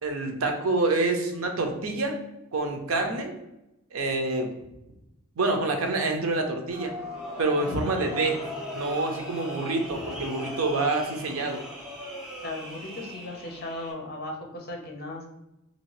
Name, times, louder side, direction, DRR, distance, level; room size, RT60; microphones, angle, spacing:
voice 1, 0.0-2.2 2.5-3.4 3.9-4.5 5.4-6.9 7.4-8.4 8.7-11.6, right 2 dB, 90° right, 4 dB, 0.6 m, -27 dB
sound 1, 6.7-13.9, left 1 dB, 5° right, 0.7 m, -39 dB
voice 2, 12.4-15.2, left 2 dB, 50° left, 1 dB, 0.7 m, -36 dB
2.7 x 2.7 x 3.1 m, 0.91 s
head